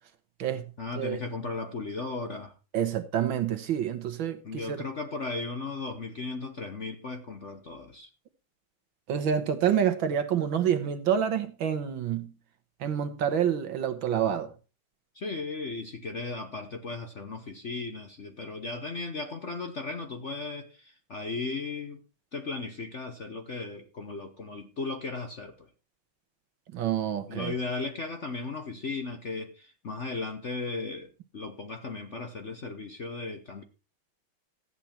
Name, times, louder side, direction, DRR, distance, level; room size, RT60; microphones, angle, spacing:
voice 1, 0.8-2.6 4.4-8.1 15.1-22.0 22.3-25.7 27.3-33.6, left 3 dB, 45° left, 1.0 m, -36 dB
voice 2, 2.7-4.8 9.1-12.3 12.8-14.5 26.7-27.5, right 9 dB, 70° right, 1.9 m, -28 dB
14.0 x 8.8 x 4.4 m
omnidirectional pair, 2.3 m